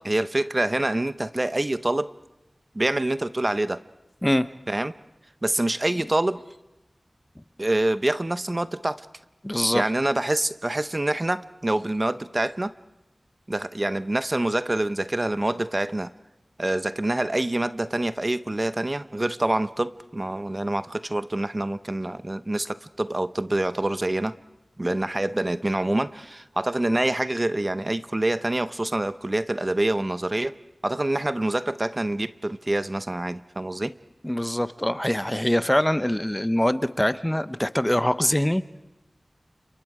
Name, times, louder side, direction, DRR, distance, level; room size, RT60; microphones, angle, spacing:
voice 1, 0.0-2.1 2.7-3.8 4.7-4.9 5.4-6.4 7.6-9.1 9.7-12.7 13.5-16.1 16.6-24.3 24.8-30.6 30.8-34.0, right 1 dB, 40° right, 14 dB, 0.7 m, -26 dB
voice 2, 9.4-9.8 34.2-38.6, left 1 dB, 15° left, 14 dB, 0.8 m, -23 dB
30.0 x 26.5 x 4.9 m, 0.99 s
wide cardioid pair, 40°, 0 cm